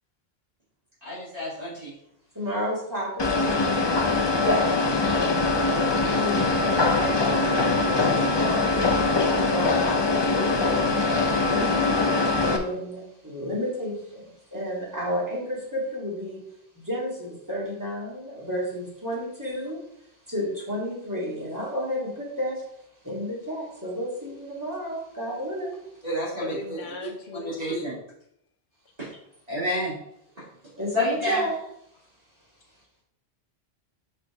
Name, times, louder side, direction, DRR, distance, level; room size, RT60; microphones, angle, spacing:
voice 1, 1.0-1.9 4.4-4.6 26.0-26.8 27.4-27.9 29.0-29.1 29.5-29.9 30.9-31.4, left 1 dB, 35° right, -9 dB, 2.4 m, -28 dB
voice 2, 2.3-3.9 5.5-8.8 9.3-11.0 11.4-16.4 16.8-19.8 20.3-22.6 23.0-25.8 30.8-31.6, equal, 15° right, -5 dB, 2.3 m, -32 dB
sound 1, 3.2-12.6, left 3 dB, 30° left, 0.6 m, -23 dB
voice 3, 26.4-28.0, left 4 dB, 65° left, 0 dB, 1.0 m, -36 dB
5.4 x 4.9 x 4.8 m, 0.75 s
omnidirectional pair, 1.1 m